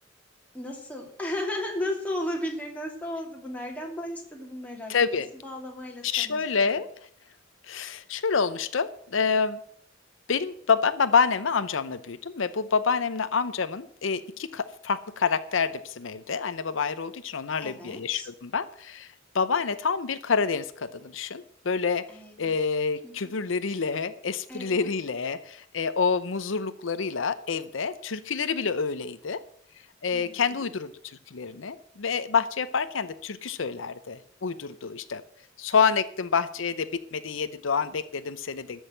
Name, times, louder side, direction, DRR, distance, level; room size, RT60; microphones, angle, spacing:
voice 1, 0.5-6.8 17.6-18.3 22.1-22.5 23.0-23.3 24.5-24.9 30.1-30.7, left 1 dB, 10° left, -1 dB, 2.8 m, -35 dB
voice 2, 4.9-5.3 6.0-6.9 7.7-9.6 10.3-19.1 19.3-22.1 22.4-29.4 30.0-35.2 35.6-38.8, left 5 dB, 80° left, 12 dB, 0.7 m, -27 dB
13.5 x 6.4 x 7.5 m, 0.62 s
head